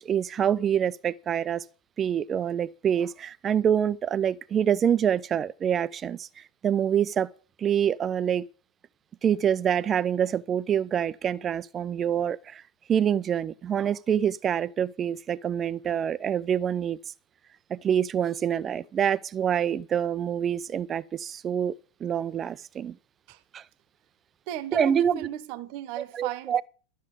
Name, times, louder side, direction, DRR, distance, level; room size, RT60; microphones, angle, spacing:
voice 1, 0.0-1.6 2.0-7.3 7.6-8.5 9.2-12.6 12.9-17.0 17.7-21.7 22.0-22.9 23.5-23.6 24.7-25.3 26.2-26.6, right 9 dB, 25° right, 0.5 m, -26 dB
voice 2, 24.5-26.6, right 10 dB, 45° right, 1.1 m, -36 dB
12.5 x 7.4 x 8.3 m
figure-of-eight pair, 90°, 0 cm